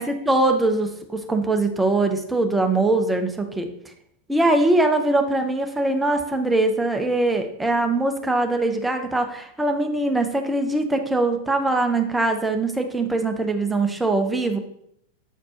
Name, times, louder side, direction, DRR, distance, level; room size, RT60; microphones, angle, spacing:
voice 1, 0.0-3.7 4.3-14.6, right 2 dB, 5° right, 5 dB, 0.7 m, -22 dB
7.8 x 4.2 x 2.9 m, 0.71 s
figure-of-eight pair, 90°, 0 cm